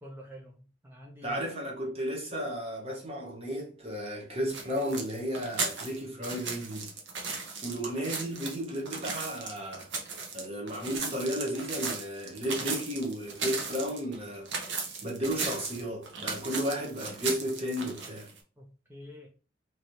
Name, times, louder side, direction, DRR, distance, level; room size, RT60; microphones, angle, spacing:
voice 1, 0.0-1.4 18.6-19.3, equal, 10° right, 0.5 m, -48 dB
voice 2, 1.2-6.9 7.6-9.9 10.3-14.5 15.0-18.3, equal, 30° right, 0.9 m, -33 dB
sound 1, 4.5-18.4, right 4 dB, 65° right, 0.7 m, -36 dB
3.1 x 2.7 x 2.9 m
head